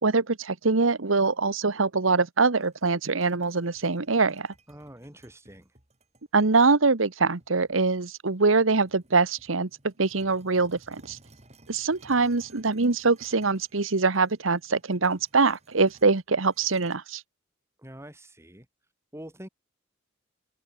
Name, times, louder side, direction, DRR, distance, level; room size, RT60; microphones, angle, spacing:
voice 1, 0.0-4.5 6.3-11.2 11.7-17.2, right 4 dB, 85° right, 1.3 m, -23 dB
sound 1, 2.6-6.2 6.8-6.9 7.4-8.5 8.9-17.0, right 2 dB, 35° right, 5.6 m, -57 dB
voice 2, 4.7-5.7 17.8-18.7 19.1-19.5, right 1 dB, 15° right, 7.9 m, -45 dB
open air
head